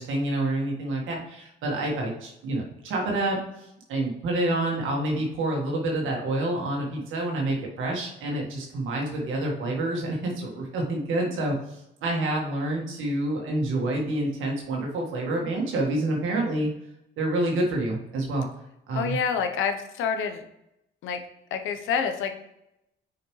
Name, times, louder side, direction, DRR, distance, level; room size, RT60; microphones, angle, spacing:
voice 1, 0.0-16.7 17.2-18.4 18.9-19.2, right 1 dB, 80° right, -1 dB, 1.6 m, -28 dB
voice 2, 18.9-20.4 21.0-21.2 21.5-22.3, left 6 dB, 90° left, 7 dB, 0.8 m, -27 dB
6.7 x 4.9 x 3.2 m, 0.83 s
cardioid pair, 90°, 20 cm